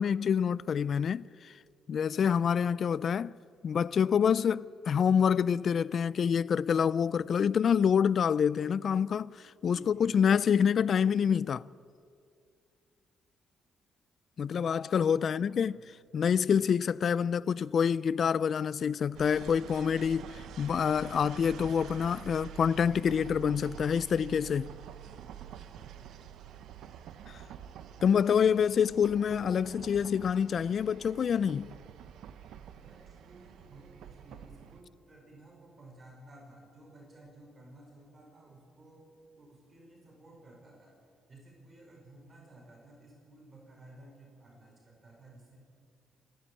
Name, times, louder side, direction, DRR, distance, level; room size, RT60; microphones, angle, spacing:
voice 1, 0.0-1.5 1.9-3.3 3.6-9.3 9.6-11.7 14.4-15.8 16.1-20.3 20.6-24.7 28.0-31.7, left 7 dB, 55° left, 0.4 m, -27 dB
voice 2, 9.7-10.0 15.2-15.4 15.7-15.9 25.7-25.8 26.1-26.2 32.8-39.1 39.4-40.9 41.3-45.6, right 1 dB, 30° right, 5.6 m, -55 dB
sound 1, 19.1-34.8, right 9 dB, 80° right, 1.2 m, -47 dB
26.0 x 12.5 x 8.6 m
cardioid pair, 90°, 0 cm